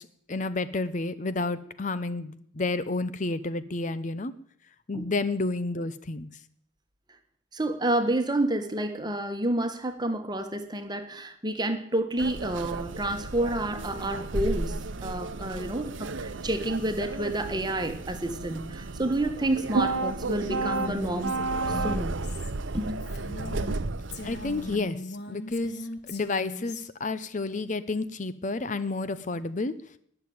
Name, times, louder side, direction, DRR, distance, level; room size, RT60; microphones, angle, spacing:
voice 1, 0.0-4.3 4.9-6.3 24.2-29.8, left 3 dB, 40° left, 14 dB, 0.7 m, -30 dB
voice 2, 7.5-21.4 21.7-22.1 22.7-23.0, right 1 dB, 20° right, 8 dB, 1.4 m, -29 dB
sound 1, 12.2-24.8, right 3 dB, 85° right, 0.8 m, -32 dB
Female speech woman speaking, 20.3-23.8 24.1-26.8, left 2 dB, 60° left, 1.9 m, -39 dB
20.0 x 6.9 x 9.5 m, 0.67 s
head